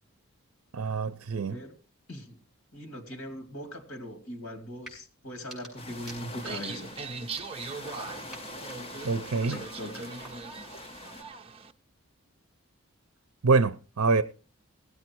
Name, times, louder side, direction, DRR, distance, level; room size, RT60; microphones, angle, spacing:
voice 1, 0.7-1.6 9.0-9.6 13.4-14.2, right 4 dB, 70° right, 0.6 m, -25 dB
voice 2, 2.1-2.4 2.7-7.0 9.5-10.1, equal, 65° left, 2.7 m, -40 dB
sound 1, 4.8-5.0 5.3-6.7 7.2-7.9 8.3-10.7, right 1 dB, ahead, 6.7 m, -51 dB
sound 2, 5.8-11.2, left 1 dB, 30° left, 1.5 m, -44 dB
sound 3, 6.4-11.7, right 4 dB, 25° right, 0.7 m, -40 dB
17.0 x 8.4 x 4.6 m
head